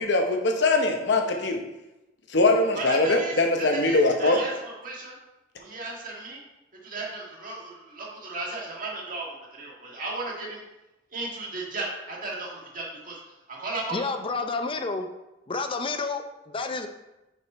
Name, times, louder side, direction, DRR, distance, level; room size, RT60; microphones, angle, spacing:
voice 1, 0.0-1.6 2.3-4.4, left 2 dB, 65° left, 3 dB, 0.9 m, -22 dB
voice 2, 2.7-5.1 5.6-6.4 6.8-10.6 11.1-13.2 13.5-14.1, right 2 dB, 45° right, -3 dB, 1.7 m, -35 dB
voice 3, 13.9-15.1 15.5-16.9, left 3 dB, 30° left, 7 dB, 0.5 m, -30 dB
5.1 x 5.1 x 4.3 m, 0.98 s
head